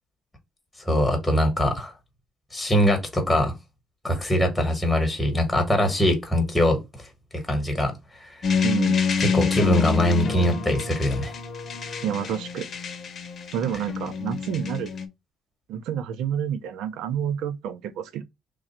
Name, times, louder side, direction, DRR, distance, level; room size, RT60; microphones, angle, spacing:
voice 1, 0.9-1.9 2.5-3.5 4.0-6.8 7.3-8.0 9.3-11.3, left 1 dB, 5° left, 1.3 m, -22 dB
sound 1, 8.4-15.1, left 5 dB, 45° left, 0.8 m, -27 dB
voice 2, 8.6-9.0 12.0-12.7 13.5-14.9 15.7-18.2, right 9 dB, 85° right, 0.6 m, -29 dB
3.1 x 2.4 x 4.3 m
cardioid pair, 115°, 0 cm